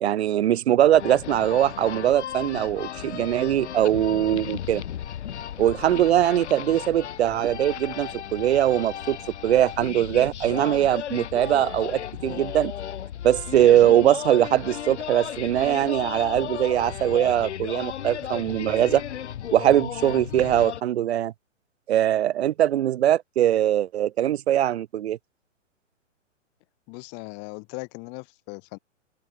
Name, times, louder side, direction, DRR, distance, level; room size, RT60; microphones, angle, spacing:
voice 1, 0.0-4.8 5.6-9.2 9.4-12.7 13.2-19.0 19.5-21.3 21.9-25.2, right 11 dB, 55° right, 0.9 m, -21 dB
sound 1, 0.9-20.8, left 10 dB, 60° left, 2.8 m, -35 dB
voice 2, 26.9-28.8, left 33 dB, 30° left, 1.4 m, -38 dB
open air
hypercardioid pair, 130°, 38 cm